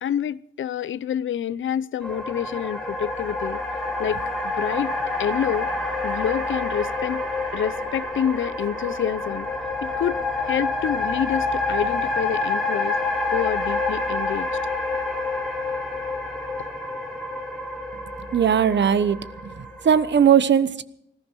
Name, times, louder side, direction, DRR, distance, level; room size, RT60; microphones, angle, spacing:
voice 1, 0.0-3.6 4.0-4.9 5.2-5.7 6.0-7.2 7.5-9.5 9.8-10.2 10.4-13.0 13.3-14.5, left 9 dB, 90° left, 0.6 m, -27 dB
sound 1, 2.0-20.2, left 2 dB, ahead, 4.4 m, -28 dB
voice 2, 18.3-19.2 19.4-20.8, right 8 dB, 65° right, 1.0 m, -19 dB
20.0 x 14.5 x 4.7 m
wide cardioid pair, 115°, 19 cm